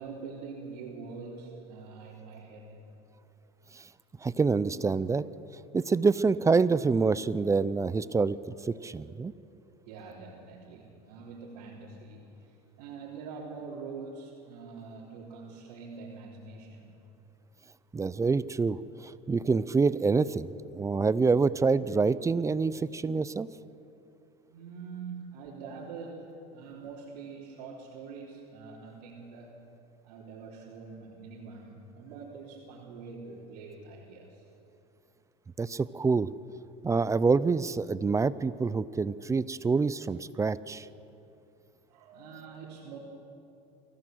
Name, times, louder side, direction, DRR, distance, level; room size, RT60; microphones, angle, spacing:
voice 1, 0.0-2.8 9.9-16.9 24.5-29.6 30.0-34.5 41.9-43.0, right 4 dB, 85° right, -4 dB, 3.5 m, -44 dB
voice 2, 4.2-5.3 5.7-9.3 17.9-23.5 35.6-36.3 36.8-40.9, right 4 dB, 15° right, 17 dB, 0.5 m, -26 dB
24.0 x 16.5 x 7.8 m, 2.8 s
supercardioid pair, 120°, 20 cm